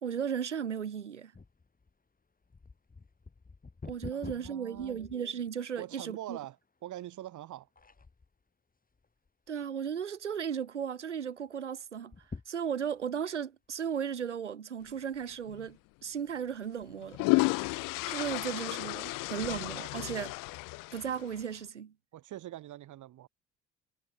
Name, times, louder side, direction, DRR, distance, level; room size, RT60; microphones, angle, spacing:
voice 1, 0.0-1.3 3.8-6.4 9.5-12.1 12.5-17.3 18.1-20.3 20.9-21.9, right 7 dB, 85° right, 2.7 m, -35 dB
sound 1, 1.3-5.8 6.4-6.5 7.2-7.4 7.8-8.4 8.9-9.6 10.0-10.1 10.4-10.5 12.0-13.1 13.7-13.8, left 4 dB, 25° left, 6.9 m, -48 dB
voice 2, 4.1-5.0 5.8-6.6 6.8-7.7 22.1-23.3, right 13 dB, 55° right, 8.0 m, -44 dB
sound 2, 15.5-15.7 16.8-21.4, left 24 dB, 65° left, 3.1 m, -32 dB
figure-of-eight pair, 50°, 35 cm